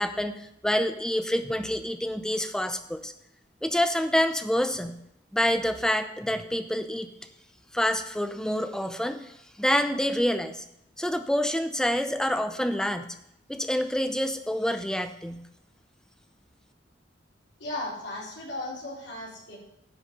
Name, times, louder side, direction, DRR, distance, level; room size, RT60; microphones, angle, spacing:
voice 1, 0.0-3.1 3.6-5.0 5.3-7.1 7.7-10.7 11.0-13.1 13.5-15.4, equal, 5° left, 8 dB, 0.7 m, -27 dB
voice 2, 17.6-19.6, left 2 dB, 80° left, -7 dB, 4.1 m, -36 dB
10.0 x 8.0 x 5.3 m, 0.79 s
head